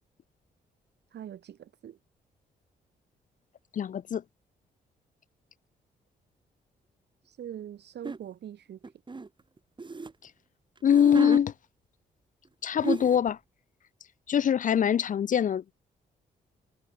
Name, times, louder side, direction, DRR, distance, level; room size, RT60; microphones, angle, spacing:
voice 1, 1.1-2.0 7.2-8.8, right 10 dB, 65° right, 1.3 m, -42 dB
voice 2, 3.7-4.2 10.8-11.5 12.6-13.4 14.3-15.7, left 8 dB, 45° left, 0.4 m, -23 dB
sound 1, 8.0-8.2 8.8-10.1 10.8-11.4 12.4-12.5 12.8-13.3, right 3 dB, 25° right, 1.1 m, -33 dB
supercardioid pair, 55°, 18 cm